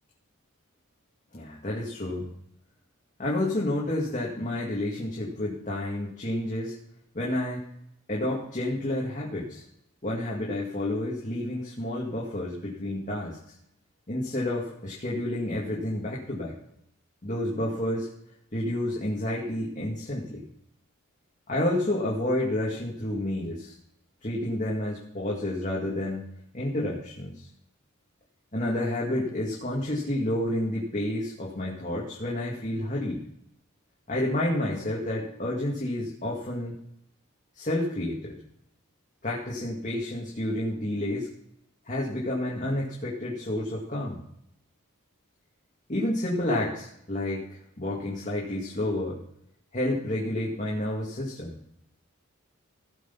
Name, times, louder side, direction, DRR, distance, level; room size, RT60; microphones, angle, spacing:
voice 1, 1.3-2.3 3.2-6.8 7.1-7.6 8.1-9.6 10.0-13.5 14.1-16.5 17.2-18.1 18.5-20.5 21.5-23.7 24.2-26.3 26.5-27.5 28.5-33.2 34.1-36.8 37.5-38.4 39.2-41.3 41.9-44.2 45.9-49.2 49.7-51.6, left 1 dB, 35° left, -4 dB, 2.1 m, -30 dB
16.5 x 6.2 x 5.9 m, 0.74 s
head